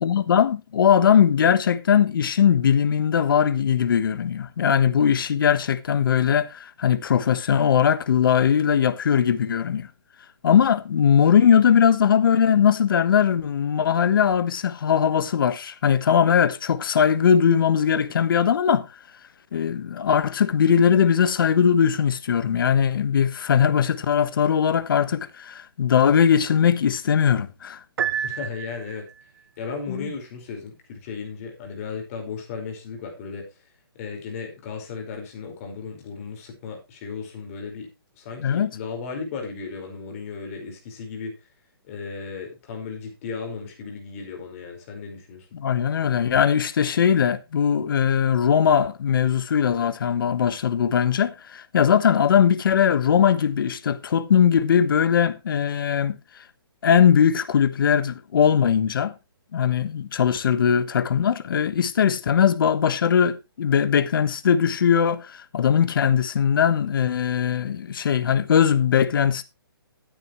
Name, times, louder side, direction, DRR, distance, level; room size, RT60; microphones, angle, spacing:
voice 1, 0.0-9.9 10.4-18.9 19.5-27.8 29.9-30.1 38.4-38.7 45.5-56.2 56.8-59.1 59.5-69.4, left 8 dB, 60° left, 1.4 m, -20 dB
Piano, 28.0-29.2, right 8 dB, 65° right, 1.0 m, -29 dB
voice 2, 28.1-29.1 29.6-33.5 33.9-37.9 38.2-41.3 41.8-45.5, left 5 dB, 35° left, 5.1 m, -35 dB
14.0 x 8.9 x 3.2 m
hypercardioid pair, 155°, 13 cm